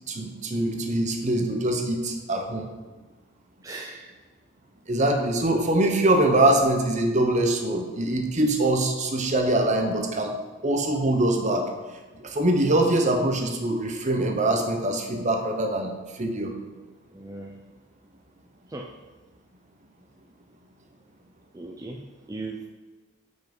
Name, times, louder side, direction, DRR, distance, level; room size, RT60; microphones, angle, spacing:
voice 1, 0.1-2.6 4.9-10.3 10.6-11.7 12.2-15.9 16.2-16.5, right 1 dB, 35° right, 4 dB, 0.9 m, -23 dB
voice 2, 3.6-4.1 17.1-17.6 18.7-18.9 21.5-22.0 22.3-22.6, right 2 dB, 15° right, 1 dB, 0.4 m, -37 dB
5.9 x 5.5 x 5.3 m, 1.3 s
head